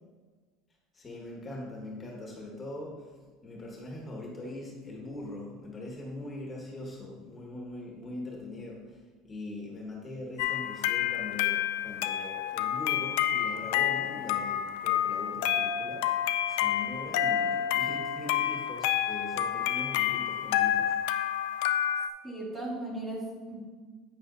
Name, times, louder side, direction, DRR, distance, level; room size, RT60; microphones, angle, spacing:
voice 1, 0.9-3.1 3.4-16.1 16.5-20.9, left 2 dB, 25° left, -1 dB, 1.3 m, -41 dB
sound 1, 10.4-22.1, left 11 dB, 80° left, 0.3 m, -29 dB
voice 2, 22.2-23.6, right 2 dB, 15° right, -6 dB, 2.0 m, -37 dB
8.5 x 6.7 x 2.5 m, 1.4 s
supercardioid pair, 125°, 0 cm